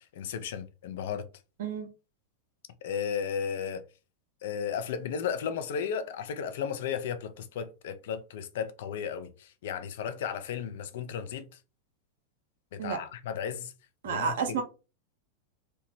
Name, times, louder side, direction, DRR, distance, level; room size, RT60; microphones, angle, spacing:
voice 1, 0.1-1.3 2.8-3.8 4.4-11.5 12.7-13.7 14.0-14.6, left 7 dB, 55° left, 0.4 m, -34 dB
voice 2, 14.0-14.6, right 6 dB, 60° right, 0.5 m, -30 dB
2.8 x 2.2 x 2.9 m
figure-of-eight pair, 90°, 0 cm